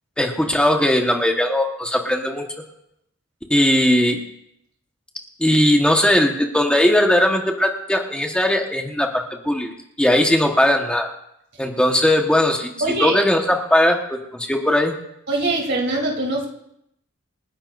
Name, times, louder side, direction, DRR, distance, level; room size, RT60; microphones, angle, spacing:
voice 1, 0.2-2.4 3.5-4.2 5.4-9.7 10.0-11.1 11.6-12.7 13.0-14.9, left 1 dB, 5° left, 2 dB, 1.3 m, -18 dB
voice 2, 12.8-13.2 15.3-16.5, right 2 dB, 60° right, -1 dB, 3.2 m, -22 dB
27.5 x 10.0 x 2.6 m, 0.77 s
head